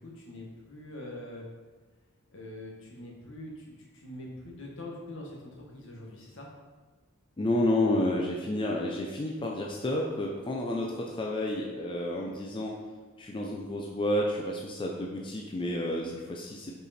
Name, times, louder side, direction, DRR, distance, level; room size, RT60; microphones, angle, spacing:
voice 1, 0.0-1.4 2.3-6.5, left 1 dB, 65° left, -1 dB, 1.4 m, -44 dB
voice 2, 7.4-12.8 13.2-16.7, left 1 dB, 25° left, -1 dB, 0.5 m, -30 dB
5.4 x 4.7 x 4.2 m, 1.3 s
head